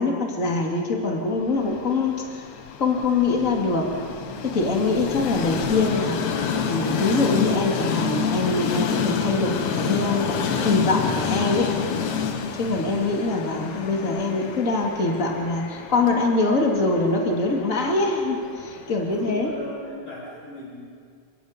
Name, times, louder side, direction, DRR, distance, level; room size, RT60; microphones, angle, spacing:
voice 1, 0.0-2.4 2.8-3.9 4.4-11.7 12.6-19.5, left 3 dB, 25° left, 0 dB, 2.9 m, -24 dB
Train, 1.5-19.6, left 6 dB, 70° left, 2.6 m, -29 dB
voice 2, 12.5-12.8 19.1-20.9, left 1 dB, 40° left, -5 dB, 7.3 m, -39 dB
29.0 x 19.0 x 5.4 m, 2.2 s
omnidirectional pair, 3.5 m